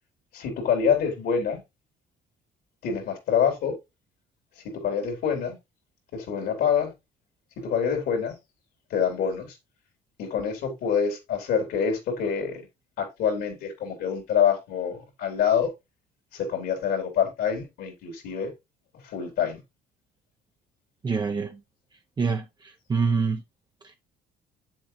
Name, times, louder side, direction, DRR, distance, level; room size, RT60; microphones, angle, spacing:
voice 1, 0.3-1.6 2.8-3.7 4.6-5.6 6.1-6.9 7.6-8.4 8.9-9.6 10.2-12.6 13.0-15.7 16.3-18.5 19.0-19.6, left 7 dB, 75° left, 3.6 m, -26 dB
voice 2, 21.0-21.6 22.2-23.4, right 5 dB, 25° right, 0.8 m, -26 dB
8.1 x 7.4 x 2.7 m
cardioid pair, 110°, 17 cm